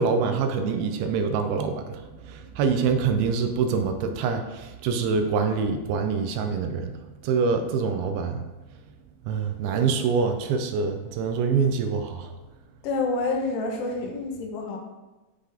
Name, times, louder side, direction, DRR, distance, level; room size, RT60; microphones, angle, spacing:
voice 1, 0.0-6.9 7.2-8.5 9.3-12.3, right 5 dB, 80° right, 6 dB, 2.5 m, -25 dB
voice 2, 12.8-14.8, left 3 dB, 90° left, 1 dB, 3.3 m, -28 dB
10.0 x 4.9 x 3.4 m, 1.1 s
omnidirectional pair, 4.6 m